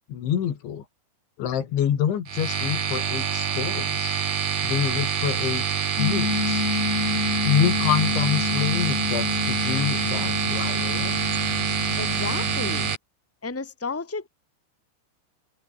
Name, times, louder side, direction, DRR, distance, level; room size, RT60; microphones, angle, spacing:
voice 1, 0.1-0.9 1.4-4.2 4.6-5.6 6.0-6.7 7.4-11.2, left 9 dB, 80° left, 5.3 m, -26 dB
sound 1, 2.3-12.9, right 7 dB, 40° right, 3.1 m, -26 dB
sound 2, 6.0-12.9, left 6 dB, 40° left, 3.7 m, -29 dB
voice 2, 12.0-12.9 13.4-14.3, left 4 dB, 5° left, 2.6 m, -32 dB
omnidirectional pair, 5.2 m